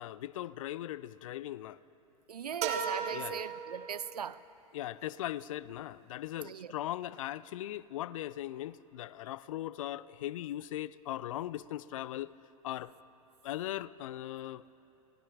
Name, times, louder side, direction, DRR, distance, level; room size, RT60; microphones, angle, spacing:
voice 1, 0.0-1.8 3.1-3.4 4.7-12.3 12.6-12.9 13.4-14.6, left 13 dB, 60° left, 0.4 m, -39 dB
voice 2, 2.3-4.4 6.4-6.7, right 8 dB, 80° right, 0.4 m, -39 dB
sound 1, 2.6-4.4, right 7 dB, 35° right, 1.4 m, -36 dB
28.0 x 19.0 x 2.4 m
figure-of-eight pair, 95°, 20 cm